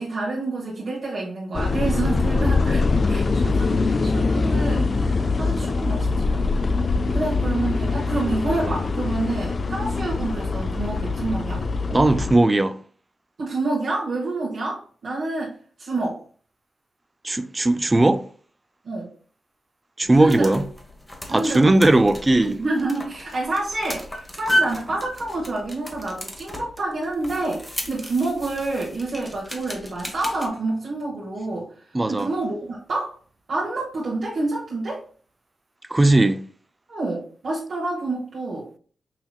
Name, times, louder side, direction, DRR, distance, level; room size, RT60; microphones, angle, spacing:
voice 1, 0.0-6.5 7.1-11.6 13.4-16.2 18.8-19.1 20.2-20.6 21.2-21.9 22.4-31.7 32.1-33.1 33.5-35.0 36.9-38.7, right 2 dB, 70° right, 1.2 m, -28 dB
sound 1, 1.5-12.4, left 3 dB, 45° left, 0.3 m, -23 dB
voice 2, 11.9-12.7 17.2-18.2 20.0-20.6 21.3-22.6 31.9-32.3 35.9-36.4, right 2 dB, 25° right, 0.4 m, -18 dB
sound 2, 20.0-30.5, equal, 20° left, 1.0 m, -33 dB
5.6 x 2.9 x 2.3 m
cardioid pair, 70°, 0 cm